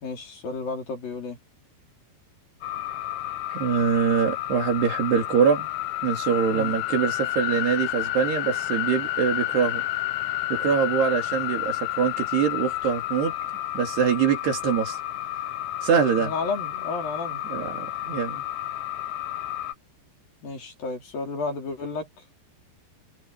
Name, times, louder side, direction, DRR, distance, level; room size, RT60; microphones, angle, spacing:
voice 1, 0.0-1.4 6.5-6.7 16.1-17.4 20.4-22.1, left 3 dB, 55° left, 5.8 m, -32 dB
sound 1, 2.6-19.8, left 15 dB, 85° left, 3.5 m, -30 dB
voice 2, 3.5-5.7 6.0-9.8 10.5-13.3 13.7-15.0 15.8-16.3 17.5-18.4, right 7 dB, 65° right, 5.4 m, -24 dB
omnidirectional pair, 5.2 m